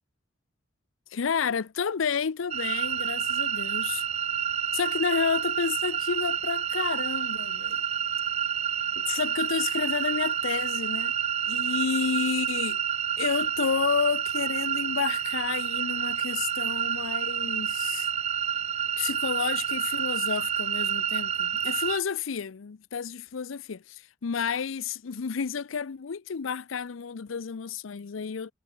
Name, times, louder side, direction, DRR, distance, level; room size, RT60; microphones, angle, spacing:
voice 1, 1.1-4.0 4.7-7.8 9.0-11.1 11.5-12.8 13.2-18.1 19.0-28.5, left 6 dB, 85° left, 0.6 m, -31 dB
sound 1, 2.5-22.0, right 8 dB, 35° right, 0.4 m, -29 dB
head